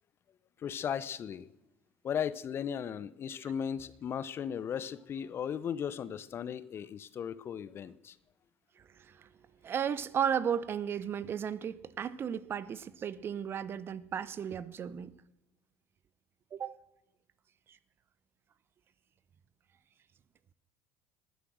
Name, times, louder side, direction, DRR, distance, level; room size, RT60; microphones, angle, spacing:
voice 1, 0.6-1.5 2.0-8.2, left 8 dB, 40° left, 0.8 m, -36 dB
voice 2, 9.6-15.1 16.5-16.8, right 8 dB, 40° right, 0.8 m, -34 dB
19.0 x 9.9 x 6.3 m
hypercardioid pair, 70°, 6 cm